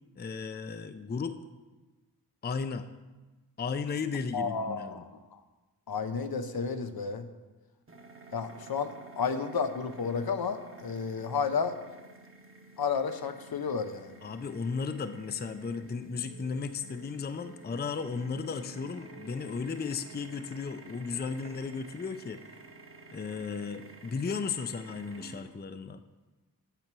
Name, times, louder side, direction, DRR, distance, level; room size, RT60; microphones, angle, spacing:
voice 1, 0.2-1.4 2.4-2.9 3.6-5.0 14.2-22.4 23.1-26.0, left 5 dB, 25° left, 10 dB, 0.4 m, -35 dB
voice 2, 4.3-5.0 5.9-7.3 8.3-8.9 9.2-11.8 12.8-14.1, left 5 dB, 70° left, 8 dB, 0.7 m, -31 dB
sound 1, 7.9-25.4, right 3 dB, 35° right, 1.0 m, -51 dB
9.0 x 5.6 x 6.1 m, 1.2 s
wide cardioid pair, 80°, 38 cm